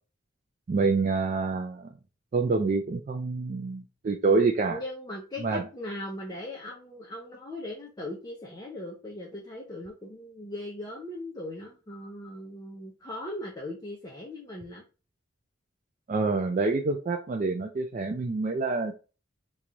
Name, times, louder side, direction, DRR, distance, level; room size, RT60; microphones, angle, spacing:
voice 1, 0.7-1.9 2.3-4.8 5.4-5.7 16.1-18.9, right 4 dB, 40° right, 0.3 m, -27 dB
voice 2, 4.7-14.8, left 1 dB, 20° left, 0.6 m, -39 dB
3.1 x 2.3 x 3.8 m
head